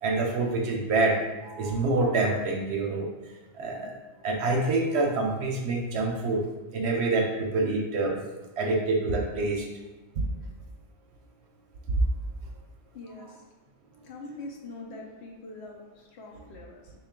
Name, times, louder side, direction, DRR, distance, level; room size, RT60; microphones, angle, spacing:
voice 1, 0.0-3.1 3.5-6.4 6.7-8.2 8.6-9.7 10.2-10.3 12.0-12.1, right 3 dB, 65° right, 1 dB, 0.8 m, -26 dB
voice 2, 12.9-13.4 14.0-16.9, left 2 dB, 65° left, 1 dB, 0.8 m, -43 dB
3.7 x 2.3 x 3.6 m, 1.1 s
omnidirectional pair, 1.3 m